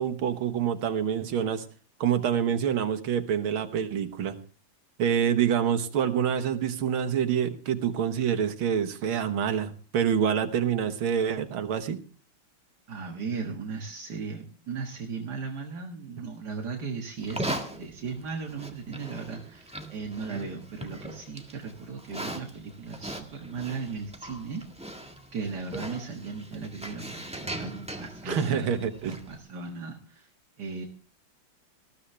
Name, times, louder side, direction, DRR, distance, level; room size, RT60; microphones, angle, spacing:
voice 1, 0.0-1.6 2.0-4.4 5.0-12.0 28.3-29.2, right 8 dB, 85° right, 9 dB, 2.1 m, -26 dB
voice 2, 12.9-24.6 25.3-28.7 29.1-30.3 30.6-30.9, right 4 dB, 55° right, 3 dB, 2.1 m, -37 dB
Livestock farm animals working animals, 17.2-29.4, right 1 dB, 5° right, 1.4 m, -39 dB
19.5 x 14.0 x 3.3 m, 0.37 s
omnidirectional pair, 2.2 m